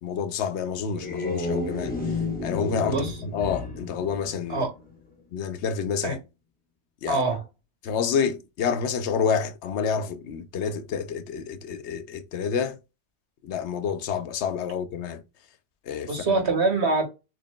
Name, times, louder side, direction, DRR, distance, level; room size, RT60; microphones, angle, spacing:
voice 1, 0.0-4.7 5.3-6.2 7.0-7.2 7.8-12.8 13.4-15.2 15.9-16.4, left 6 dB, 90° left, 0.9 m, -28 dB
sound 1, 0.8-5.0, left 3 dB, 10° left, 1.1 m, -32 dB
voice 2, 2.8-3.1 4.5-4.7 6.0-6.2 7.1-7.4 16.1-17.1, right 3 dB, 80° right, 1.9 m, -24 dB
6.8 x 3.1 x 2.2 m
omnidirectional pair, 1.1 m